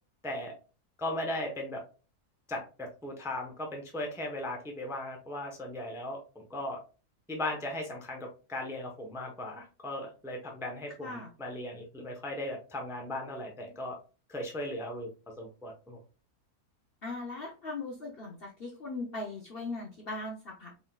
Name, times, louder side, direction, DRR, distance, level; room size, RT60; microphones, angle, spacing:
voice 1, 0.2-0.5 1.0-1.8 2.5-6.8 7.3-14.0 14.3-15.1 15.4-16.0, left 1 dB, 5° right, 1 dB, 0.6 m, -37 dB
voice 2, 11.0-11.3 17.0-20.8, left 2 dB, 50° left, 0 dB, 0.8 m, -39 dB
4.2 x 3.6 x 2.3 m, 0.34 s
omnidirectional pair, 1.7 m